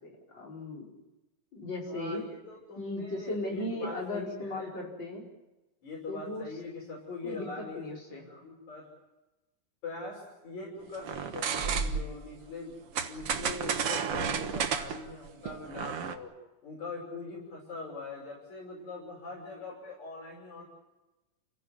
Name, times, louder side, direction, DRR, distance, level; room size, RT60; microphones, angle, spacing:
voice 1, 0.0-0.9 1.5-2.2 2.8-5.2 6.1-6.5 7.2-8.3, left 1 dB, 35° left, -1 dB, 5.7 m, -37 dB
voice 2, 1.9-4.7 5.8-8.9 9.8-16.3 16.6-20.6, left 3 dB, 70° left, -2 dB, 7.1 m, -42 dB
sound 1, 11.0-12.2 13.0-16.2, right 6 dB, 55° right, 2.1 m, -32 dB
30.0 x 15.0 x 9.6 m, 1.0 s
omnidirectional pair, 3.5 m